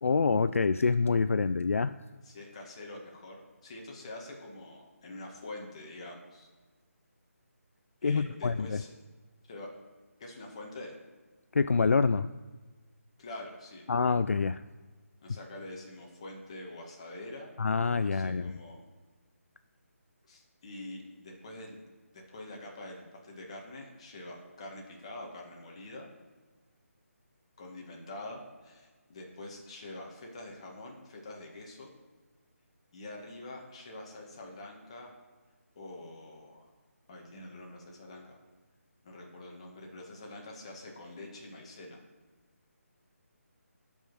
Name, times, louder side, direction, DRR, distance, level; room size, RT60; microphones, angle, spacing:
voice 1, 0.0-1.9 8.0-8.8 11.5-12.3 13.9-14.6 17.6-18.5, left 4 dB, 60° left, 12 dB, 0.4 m, -26 dB
voice 2, 2.2-6.5 8.0-8.9 9.5-9.7 10.2-11.0 13.2-13.9 15.2-17.5 18.0-18.8 20.3-21.8 22.1-26.1 27.6-31.9 32.9-35.1 35.7-36.7 37.1-38.4 39.0-42.0, left 2 dB, 25° left, 0 dB, 1.6 m, -45 dB
11.5 x 5.4 x 6.1 m, 1.4 s
hypercardioid pair, 175°, 8 cm